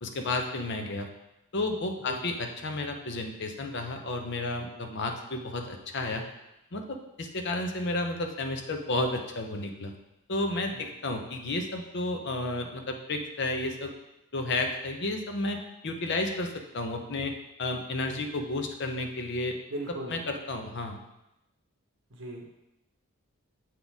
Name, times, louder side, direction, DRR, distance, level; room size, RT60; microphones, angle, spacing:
voice 1, 0.0-1.1 1.5-6.2 6.7-9.9 10.3-13.9 14.3-17.3 17.6-19.5 20.1-21.0, left 2 dB, 50° left, 4 dB, 0.7 m, -32 dB
voice 2, 19.7-20.1 22.1-22.5, right 1 dB, 55° right, 0 dB, 1.1 m, -38 dB
7.4 x 4.1 x 3.5 m, 0.91 s
head